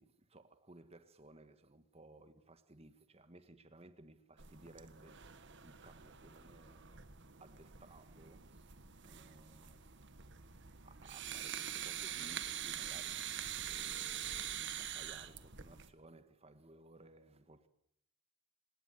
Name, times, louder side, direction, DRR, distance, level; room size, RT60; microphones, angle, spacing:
voice 1, 0.0-5.3 5.6-7.1 7.4-10.1 10.8-17.7, right 2 dB, 30° right, 1.7 m, -60 dB
sound 1, 4.4-15.9, right 10 dB, 55° right, 1.6 m, -45 dB
27.5 x 18.5 x 8.1 m
head